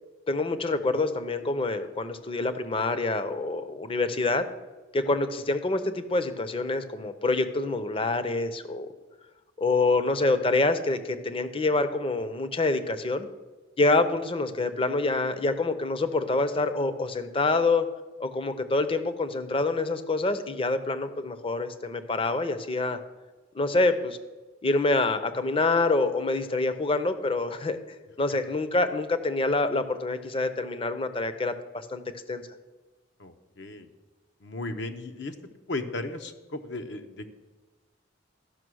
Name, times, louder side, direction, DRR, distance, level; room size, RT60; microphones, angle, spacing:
voice 1, 0.3-4.5 4.9-8.9 9.6-13.3 13.8-17.9 18.2-23.0 23.5-24.2 24.6-27.8 28.2-32.0 32.3-32.5, left 2 dB, 30° left, 11 dB, 0.6 m, -26 dB
voice 2, 33.2-33.9 34.4-35.3 35.7-37.3, left 2 dB, 65° left, 6 dB, 0.8 m, -35 dB
12.5 x 5.8 x 6.2 m, 1.2 s
head